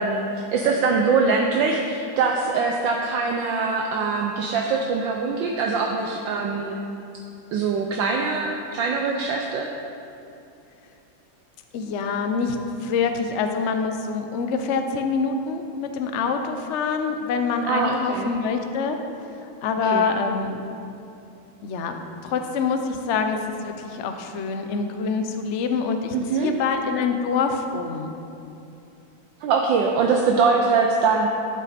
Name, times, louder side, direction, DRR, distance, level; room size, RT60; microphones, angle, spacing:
voice 1, 0.0-6.8 7.5-9.7 17.7-18.3 19.8-20.0 26.1-26.5 29.4-31.3, right 4 dB, 70° right, 1 dB, 1.3 m, -23 dB
voice 2, 11.7-19.0 19.6-20.6 21.6-28.1, left 5 dB, 80° left, 6 dB, 0.6 m, -25 dB
13.0 x 7.5 x 4.2 m, 2.8 s
omnidirectional pair, 2.3 m